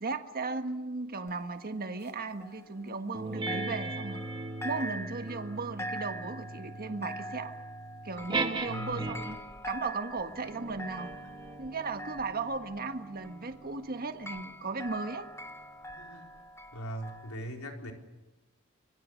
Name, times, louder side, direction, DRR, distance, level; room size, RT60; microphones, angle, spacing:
voice 1, 0.0-4.2 4.6-7.5 8.0-9.4 9.6-11.1 11.6-15.3, right 3 dB, 45° right, 7 dB, 1.5 m, -36 dB
sound 1, 1.3-3.2 3.5-17.4, equal, 15° left, 1.3 m, -44 dB
sound 2, 3.1-9.5 10.3-15.2, right 2 dB, 20° right, 1.7 m, -39 dB
voice 2, 8.6-9.1 15.9-16.2 16.7-17.9, right 1 dB, 85° left, 2 dB, 4.3 m, -40 dB
26.0 x 23.5 x 6.4 m, 1.1 s
head